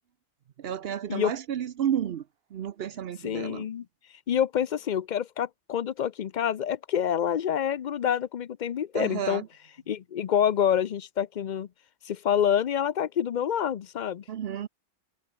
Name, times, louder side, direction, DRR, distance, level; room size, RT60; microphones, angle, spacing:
voice 1, 0.6-2.2 2.5-3.6 8.9-9.5 14.3-14.7, right 9 dB, 70° right, 0.9 m, -31 dB
voice 2, 3.2-3.8 4.3-9.4 9.9-11.7 12.1-14.2, left 9 dB, 50° left, 0.7 m, -27 dB
omnidirectional pair, 1.0 m